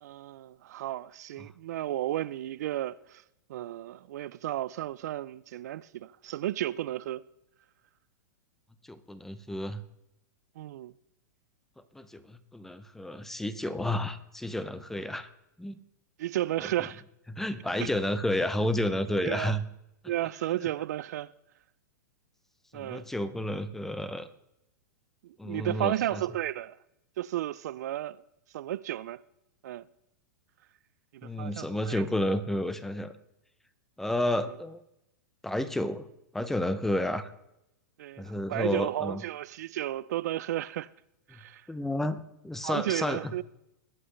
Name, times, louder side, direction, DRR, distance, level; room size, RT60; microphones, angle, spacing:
voice 1, 0.0-3.2 3.5-7.2 10.6-10.9 16.2-17.0 17.8-17.9 19.2-19.5 20.1-21.3 22.7-23.1 25.2-26.8 27.2-28.2 28.5-29.2 29.6-29.8 31.1-32.0 38.0-40.9 41.3-41.6 42.6-43.4, right 14 dB, 65° right, 0.4 m, -33 dB
voice 2, 8.9-9.8 11.9-15.3 15.6-15.8 17.3-19.6 22.7-24.3 25.4-26.2 31.2-33.1 34.0-34.8 35.4-36.1 36.3-37.3 38.2-39.2 41.7-43.3, left 1 dB, 5° left, 0.6 m, -31 dB
21.5 x 7.9 x 3.2 m
hypercardioid pair, 145°, 10 cm